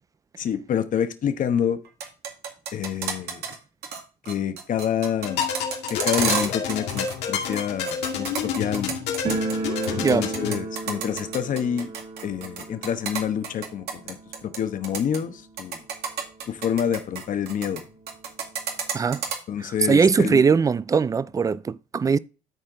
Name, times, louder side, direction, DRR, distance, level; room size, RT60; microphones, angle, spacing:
voice 1, 0.4-1.8 2.7-3.4 4.3-5.4 5.9-9.0 9.9-11.9 12.2-14.2 14.4-15.8 16.5-17.8 19.5-20.4, left 8 dB, 50° left, 1.1 m, -27 dB
sound 1, 1.9-3.6 3.8-4.0 4.3-7.2 7.4-9.5 9.8-14.6 14.8-15.2 15.6-17.8 18.1-19.4, right 6 dB, 75° right, 2.1 m, -30 dB
sound 2, 5.2-10.6, left 7 dB, 90° left, 2.2 m, -29 dB
sound 3, 9.2-16.0 16.2-16.3 16.6-16.7 17.4-17.5 17.8-19.0, right 3 dB, 40° right, 1.8 m, -34 dB
voice 2, 10.0-10.3 18.9-19.2 19.6-22.2, right 5 dB, 20° right, 0.4 m, -21 dB
12.0 x 4.4 x 3.8 m
cardioid pair, 110°, 17 cm